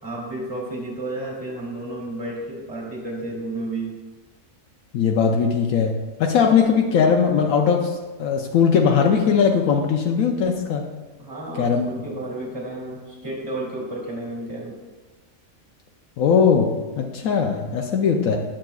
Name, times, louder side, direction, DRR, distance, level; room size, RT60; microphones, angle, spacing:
voice 1, 0.0-3.9 11.2-14.8, right 2 dB, 15° right, -4 dB, 2.1 m, -32 dB
voice 2, 4.9-10.9 11.6-11.9 16.2-18.4, left 6 dB, 85° left, 2 dB, 1.1 m, -19 dB
10.0 x 7.4 x 2.3 m, 1.3 s
omnidirectional pair, 1.4 m